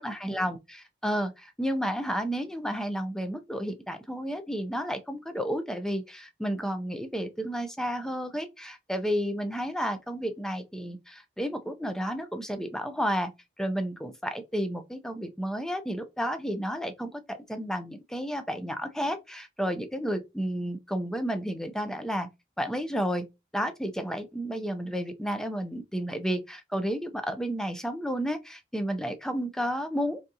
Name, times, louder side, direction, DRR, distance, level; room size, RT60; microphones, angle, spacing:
voice 1, 0.0-13.3 13.6-22.3 22.6-23.3 23.5-30.2, equal, 5° left, 0.5 m, -31 dB
4.0 x 3.6 x 2.7 m
head